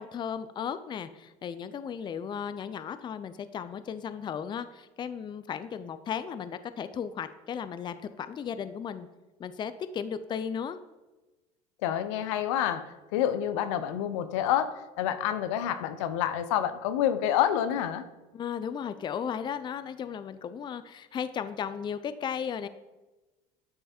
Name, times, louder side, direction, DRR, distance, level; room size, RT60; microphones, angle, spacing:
voice 1, 0.0-9.1 9.4-10.8 18.3-22.7, left 7 dB, 30° left, 12 dB, 0.4 m, -35 dB
voice 2, 11.8-18.1, left 10 dB, 80° left, 11 dB, 0.5 m, -28 dB
9.3 x 3.3 x 4.3 m, 1.1 s
supercardioid pair, 85°, 16 cm